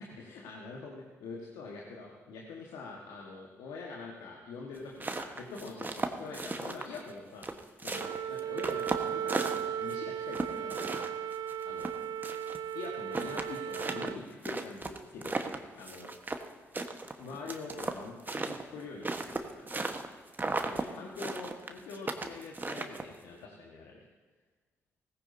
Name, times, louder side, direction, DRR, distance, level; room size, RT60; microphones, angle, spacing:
voice 1, 0.2-11.1 11.6-11.9 12.7-16.1 17.2-24.0, left 4 dB, 70° left, -2 dB, 1.5 m, -45 dB
sound 1, 4.8-7.1 7.4-9.9 10.3-12.6 12.8-12.9 13.1-16.5 16.7-20.1 20.3-20.9 21.2-23.2, right 3 dB, 25° right, 1.3 m, -35 dB
Wind instrument woodwind instrument, 7.9-14.2, right 9 dB, 60° right, 0.4 m, -36 dB
17.5 x 15.0 x 2.8 m, 1.4 s
hypercardioid pair, 40°, 7 cm